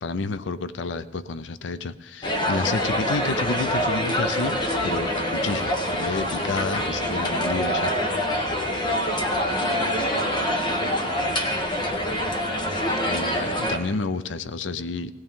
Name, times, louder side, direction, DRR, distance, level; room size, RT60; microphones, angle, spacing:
voice 1, 0.0-7.9 13.0-15.1, left 4 dB, 90° left, 14 dB, 0.5 m, -30 dB
sound 1, 2.2-13.8, equal, 25° left, 1.3 m, -25 dB
voice 2, 9.5-11.9, right 1 dB, 15° right, 0 dB, 1.4 m, -44 dB
18.5 x 16.0 x 3.7 m, 1.0 s
head